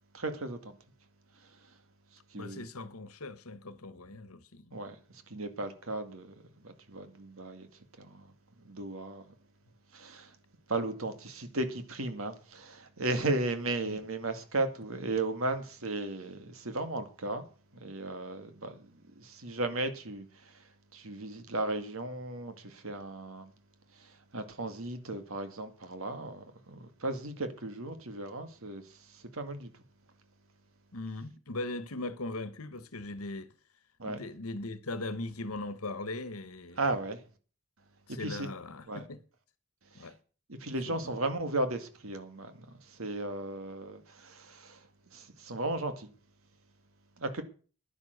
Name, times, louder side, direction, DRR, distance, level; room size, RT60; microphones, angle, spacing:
voice 1, 0.1-0.7 1.4-1.5 2.3-2.7 4.7-6.3 6.6-7.7 8.0-8.3 8.6-9.3 9.9-10.4 10.7-17.4 17.7-23.5 23.9-29.7 34.0-34.2 36.8-37.2 38.1-38.5 38.9-39.0 39.9-40.1 40.5-46.1 47.2-47.4, right 2 dB, 75° right, 2.0 m, -36 dB
voice 2, 2.3-4.7 13.8-14.0 30.9-33.5 34.0-36.8 38.1-39.2 39.9-40.1 40.9-41.1, left 2 dB, 90° left, 1.3 m, -39 dB
10.5 x 10.5 x 6.6 m
head